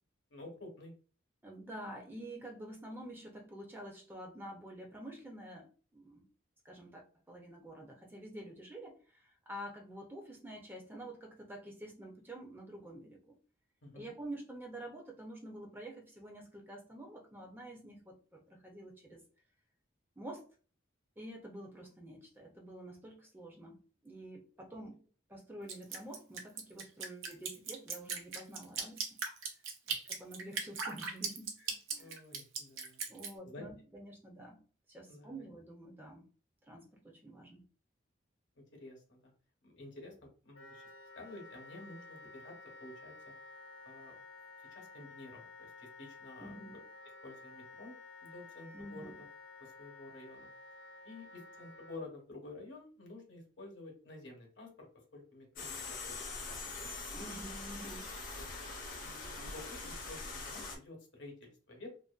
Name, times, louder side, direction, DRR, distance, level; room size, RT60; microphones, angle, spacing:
voice 1, 0.3-0.9 13.8-14.1 29.9-30.0 31.6-33.1 33.4-33.6 35.1-35.5 38.7-39.3 39.6-40.1 40.4-40.8 41.1-43.1 43.8-44.2 44.7-46.6 47.2-47.9 48.2-49.3 49.6-50.5 51.0-54.9 55.1-57.0 58.4-58.5 59.0-61.9, left 2 dB, 70° left, 0 dB, 0.9 m, -51 dB
voice 2, 1.4-5.7 5.9-6.3 6.6-13.3 13.9-19.2 20.2-20.4 21.2-25.0 25.3-29.2 30.1-31.6 31.9-32.1 33.1-34.6 34.9-36.2 36.7-37.6 46.4-46.8 48.7-49.1 57.1-58.1, right 1 dB, 10° right, 0 dB, 0.4 m, -48 dB
Drip, 25.7-33.3, right 5 dB, 85° right, 0.6 m, -38 dB
Wind instrument woodwind instrument, 40.5-52.0, left 3 dB, 90° left, 0.5 m, -53 dB
sound 1, 55.6-60.8, left 3 dB, 45° left, 0.5 m, -43 dB
2.5 x 2.2 x 2.3 m, 0.38 s
head